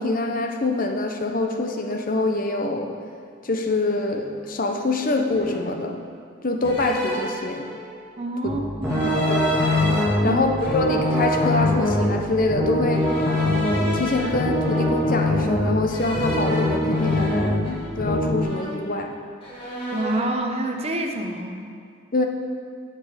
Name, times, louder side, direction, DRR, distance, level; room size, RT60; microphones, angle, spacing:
voice 1, 0.0-3.0 3.4-6.0 6.4-7.7 9.3-9.5 10.2-13.0 13.9-19.2 22.1-22.3, left 2 dB, 45° left, 3 dB, 0.9 m, -25 dB
sound 1, 4.2-4.4 5.3-5.8 6.6-8.0 8.8-10.0 10.6-12.1 12.9-15.3 15.9-18.1 18.4-19.1 19.4-20.3, equal, 25° left, 1.9 m, -33 dB
voice 2, 8.2-9.2 10.2-10.5 19.9-21.7, right 1 dB, 30° right, 4 dB, 0.8 m, -28 dB
sound 2, 8.4-18.4, left 1 dB, 5° right, 1.9 m, -23 dB
14.5 x 5.1 x 5.1 m, 2.4 s
head